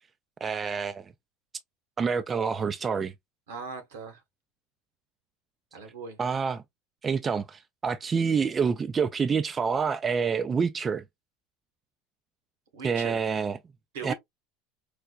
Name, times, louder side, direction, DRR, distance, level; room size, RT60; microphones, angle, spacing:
voice 1, 0.4-1.0 2.0-3.1 6.2-6.6 7.0-11.0 12.8-13.6 14.0-14.1, right 6 dB, 30° right, 0.3 m, -27 dB
voice 2, 3.5-4.2 5.7-6.2 12.7-13.2 13.9-14.1, right 5 dB, 75° right, 1.1 m, -38 dB
4.6 x 2.2 x 2.2 m
hypercardioid pair, 75°, 0 cm